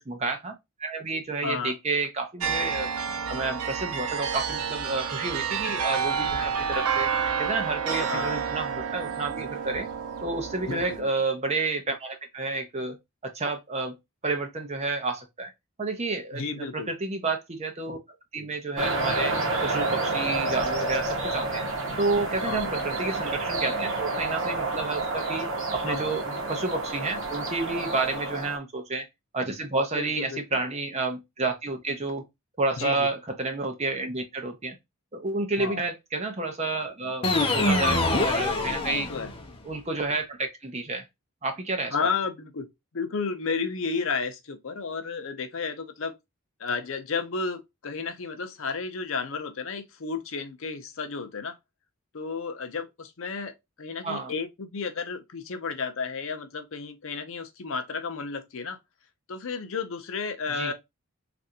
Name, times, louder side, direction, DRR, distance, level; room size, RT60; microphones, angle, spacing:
voice 1, 0.1-0.5 0.8-2.9 3.3-7.1 7.4-9.9 10.2-13.0 13.3-14.0 14.2-15.5 15.8-18.0 18.3-19.3 19.6-21.7 22.0-29.1 29.3-32.2 32.6-34.8 35.1-39.1 39.6-41.0 41.4-41.9 54.0-54.3 60.5-60.7, right 3 dB, 30° right, 0.6 m, -30 dB
voice 2, 1.4-1.7 8.1-8.4 10.7-11.1 16.3-16.9 22.4-22.7 25.8-26.2 28.3-28.4 29.9-30.6 32.8-33.1 35.6-35.8 38.8-39.3 41.9-42.7 42.9-46.2 46.6-51.6 52.1-58.8 59.3-60.7, left 5 dB, 60° left, 0.6 m, -32 dB
sound 1, 2.4-11.0, right 7 dB, 80° right, 0.5 m, -29 dB
Airplain landing, 18.8-28.6, right 2 dB, 60° right, 0.9 m, -29 dB
sound 2, 37.2-39.5, left 2 dB, 25° left, 0.7 m, -25 dB
3.3 x 2.5 x 2.7 m
head